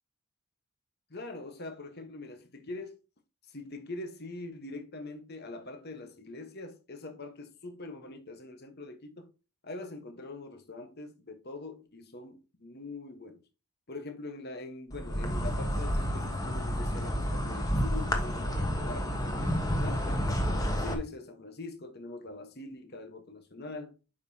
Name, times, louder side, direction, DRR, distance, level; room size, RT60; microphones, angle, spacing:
voice 1, 1.1-3.0 3.5-9.3 9.6-13.4 13.9-20.2 20.8-23.9, left 2 dB, 45° left, 1.2 m, -43 dB
Insect, 14.9-20.9, equal, 15° left, 1.2 m, -30 dB
8.6 x 5.5 x 2.8 m
head